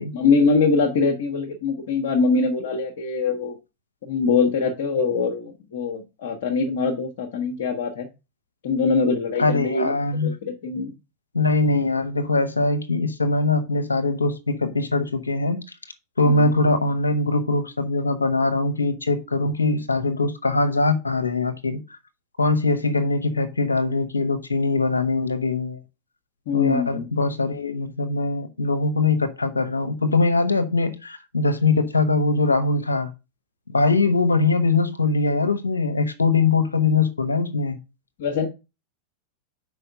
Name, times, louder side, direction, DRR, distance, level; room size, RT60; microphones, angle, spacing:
voice 1, 0.1-3.5 4.0-8.1 8.6-9.9 10.2-10.9 16.2-16.5 26.5-27.1 38.2-38.5, left 4 dB, 55° left, 1.1 m, -23 dB
voice 2, 9.4-10.3 11.3-15.6 16.2-21.8 22.4-25.8 26.5-33.1 33.7-37.8, left 3 dB, 80° left, 1.0 m, -22 dB
5.5 x 4.8 x 5.5 m
figure-of-eight pair, 90°, 0 cm